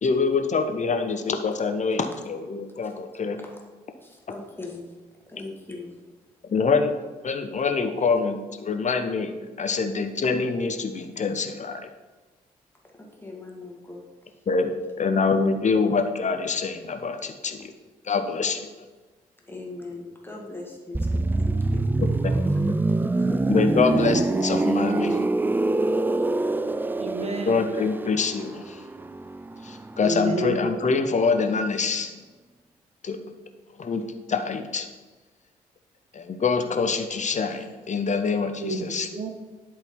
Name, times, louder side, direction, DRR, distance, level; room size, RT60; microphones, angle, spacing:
voice 1, 0.0-3.4 6.5-6.9 7.2-11.8 14.5-17.7 18.0-18.7 22.0-22.5 23.5-25.2 27.4-28.8 29.6-32.1 33.0-33.3 33.8-34.9 36.1-39.1, left 4 dB, 40° left, 6 dB, 1.0 m, -25 dB
voice 2, 4.0-5.0 5.3-6.0 13.0-14.4 19.5-22.6 23.2-23.4, left 2 dB, 10° left, -1 dB, 2.1 m, -41 dB
sound 1, 20.9-30.6 30.9-31.1, right 2 dB, 10° right, 0.3 m, -25 dB
voice 3, 27.0-27.6 30.0-30.7 38.6-39.3, right 2 dB, 35° right, 5 dB, 1.2 m, -29 dB
10.5 x 3.9 x 4.4 m, 1.3 s
hypercardioid pair, 40°, 19 cm